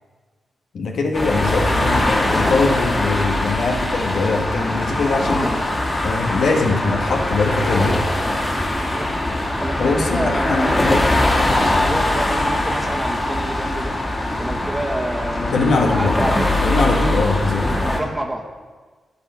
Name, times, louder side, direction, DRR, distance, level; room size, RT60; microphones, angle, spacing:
voice 1, 0.7-5.7 6.0-8.0 9.8-11.0 15.4-16.1 16.6-17.7, left 3 dB, 70° left, 2 dB, 1.3 m, -21 dB
sound 1, 1.1-18.0, left 1 dB, 25° left, 2.2 m, -21 dB
voice 2, 8.8-9.1 9.6-10.9 11.8-14.0 14.4-16.9 17.8-18.5, right 1 dB, 15° right, 2 dB, 1.4 m, -28 dB
11.0 x 4.5 x 8.0 m, 1.4 s
supercardioid pair, 50°, 0 cm